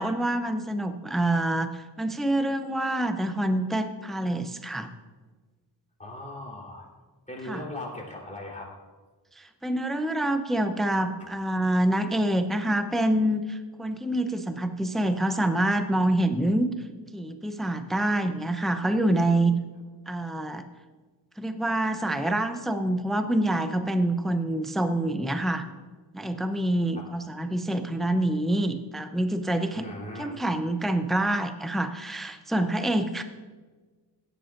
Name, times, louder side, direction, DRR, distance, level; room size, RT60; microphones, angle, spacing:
voice 1, 0.0-4.9 7.4-7.6 9.4-16.7 17.1-19.6 20.1-20.7 21.4-25.7 26.1-29.9 30.2-33.2, right 1 dB, ahead, 8 dB, 0.6 m, -26 dB
voice 2, 6.0-6.9 7.3-8.7 26.9-27.1 29.7-30.3, left 1 dB, 15° left, -4 dB, 3.5 m, -38 dB
15.5 x 10.0 x 2.5 m, 1.4 s
wide cardioid pair, 85°, 43 cm